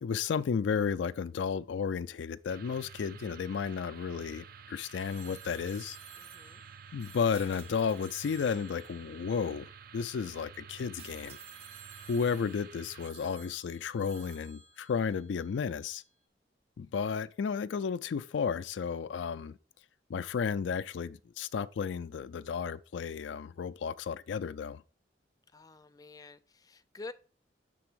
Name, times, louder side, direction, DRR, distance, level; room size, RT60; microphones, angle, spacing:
voice 1, 0.0-6.0 6.9-11.4 12.1-16.0 16.8-19.6 20.1-24.8, left 6 dB, 85° left, 0.4 m, -33 dB
sound 1, 2.5-13.1, right 7 dB, 55° right, 0.4 m, -51 dB
Telephone, 5.0-10.2 11.0-15.8, right 6 dB, 70° right, 2.3 m, -54 dB
voice 2, 6.2-6.6 25.5-27.1, left 3 dB, 20° left, 0.5 m, -48 dB
sound 2, 7.3-8.5 11.0-11.7 12.0-12.6, right 7 dB, 35° right, 0.9 m, -56 dB
6.8 x 3.4 x 6.1 m
head